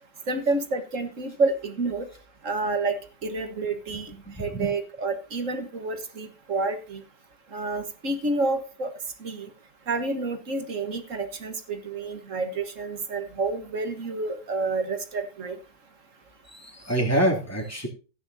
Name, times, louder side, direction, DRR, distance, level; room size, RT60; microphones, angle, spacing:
voice 1, 0.3-2.1 2.4-4.1 4.4-7.0 7.5-8.9 9.2-9.5 9.9-15.6, right 3 dB, 45° right, 7 dB, 1.7 m, -29 dB
voice 2, 4.3-4.7 16.5-17.9, right 1 dB, 10° left, 0 dB, 2.8 m, -26 dB
15.5 x 9.8 x 2.8 m, 0.34 s
omnidirectional pair, 1.9 m